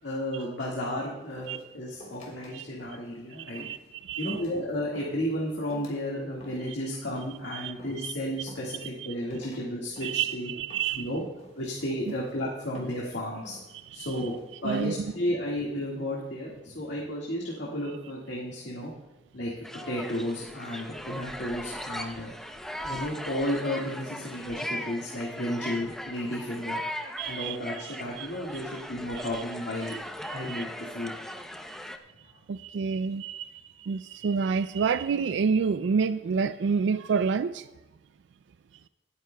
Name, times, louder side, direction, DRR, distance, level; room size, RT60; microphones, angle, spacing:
voice 1, 0.0-3.6 4.2-10.5 11.0-11.2 11.6-13.6 13.9-14.3 14.6-18.9 19.3-19.5 19.9-22.3 22.8-26.8 27.3-31.1, left 1 dB, 70° left, -4 dB, 1.8 m, -33 dB
sound 1, 1.3-2.5 2.8-3.1 3.5-3.9 4.2-4.6 4.9-5.2 5.7-6.0 6.4-6.8 7.1-7.4 7.8-8.1 8.5-9.0 9.2-9.6 10.0-10.3 10.7-11.0 11.4-11.7 12.1-12.4 12.7-13.1 13.4-13.7 14.2-14.5, equal, 40° left, 3.2 m, -49 dB
voice 2, 3.5-4.4 7.5-7.7 8.0-8.1 10.0-11.1 13.9-14.1 14.6-15.0 27.2-27.6 27.8-28.3 29.2-29.3 29.9-30.0 30.2-30.6 32.5-37.7, right 5 dB, 65° right, 13 dB, 0.3 m, -29 dB
sound 2, 19.6-32.0, equal, ahead, 0.6 m, -38 dB
25.5 x 9.5 x 2.3 m, 1.1 s
head